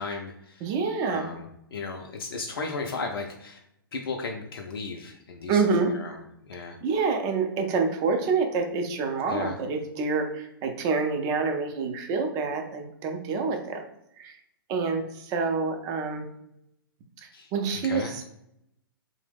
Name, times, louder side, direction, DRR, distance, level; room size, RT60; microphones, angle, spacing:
voice 1, 0.0-0.7 1.1-3.6 3.9-6.2 6.4-6.8 9.3-9.6 17.3-18.2, left 4 dB, 75° left, 2 dB, 0.4 m, -35 dB
voice 2, 0.6-1.3 5.5-5.9 6.8-13.8 14.2-14.3 14.7-16.3 17.5-18.2, right 4 dB, 30° right, 4 dB, 0.4 m, -27 dB
2.9 x 2.0 x 3.4 m, 0.80 s
hypercardioid pair, 120°, 12 cm